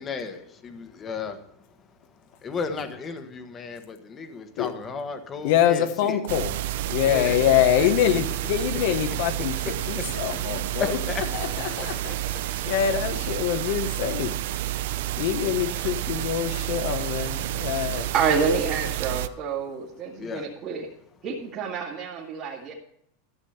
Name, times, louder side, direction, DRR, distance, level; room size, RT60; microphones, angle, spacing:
voice 1, 0.0-1.9 2.1-6.2 7.1-7.4 7.8-7.9 10.0-10.5 10.8-11.2 11.7-12.1 20.1-20.5, left 5 dB, 20° left, 1.2 m, -34 dB
voice 2, 5.4-6.6 6.8-11.0 11.3-14.4 15.2-18.1, left 10 dB, 55° left, 0.9 m, -25 dB
sound 1, 6.3-19.3, right 14 dB, 65° right, 0.5 m, -30 dB
voice 3, 18.1-20.9 21.2-22.7, right 5 dB, 35° right, 1.9 m, -28 dB
13.5 x 7.2 x 5.7 m
supercardioid pair, 155°, 0 cm